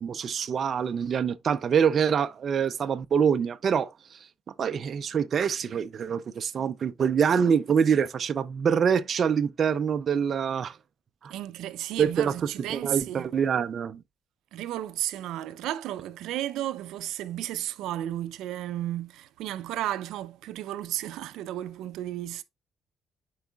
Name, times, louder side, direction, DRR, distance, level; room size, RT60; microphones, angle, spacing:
voice 1, 0.0-4.3 4.6-10.8 11.2-11.3 12.0-12.3 12.7-14.0, right 7 dB, 35° right, 0.4 m, -25 dB
voice 2, 11.3-13.3 14.5-22.4, right 13 dB, 85° right, 0.5 m, -33 dB
12.0 x 4.7 x 2.3 m
cardioid pair, 175°, 0 cm